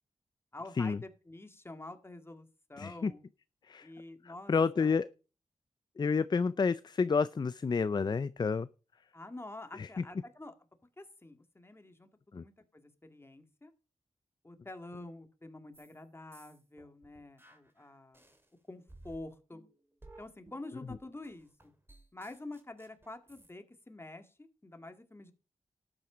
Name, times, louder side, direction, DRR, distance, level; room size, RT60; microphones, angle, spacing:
voice 1, 0.5-3.2 3.8-5.0 9.1-10.5 11.0-13.7 14.4-18.3 18.7-19.6 20.2-21.5 22.1-25.3, left 2 dB, 20° left, 2.1 m, -48 dB
voice 2, 2.8-3.1 3.7-3.9 4.5-5.1 6.0-8.7 9.8-9.9 12.3-12.4, left 5 dB, 40° left, 0.5 m, -29 dB
sound 1, 15.7-16.0 16.3-18.5 18.9-23.5, right 2 dB, 20° right, 2.7 m, -57 dB
12.5 x 8.8 x 5.1 m
cardioid pair, 70°, 12 cm